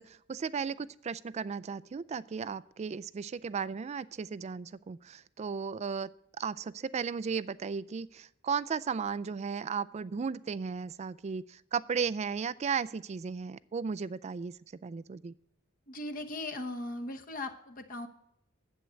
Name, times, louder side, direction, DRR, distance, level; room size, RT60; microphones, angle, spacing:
voice 1, 0.0-6.1 6.4-14.6 14.8-15.3, right 6 dB, 35° right, 19 dB, 0.3 m, -35 dB
voice 2, 15.9-18.1, left 2 dB, 45° left, 6 dB, 1.0 m, -38 dB
11.0 x 8.1 x 6.3 m, 0.75 s
head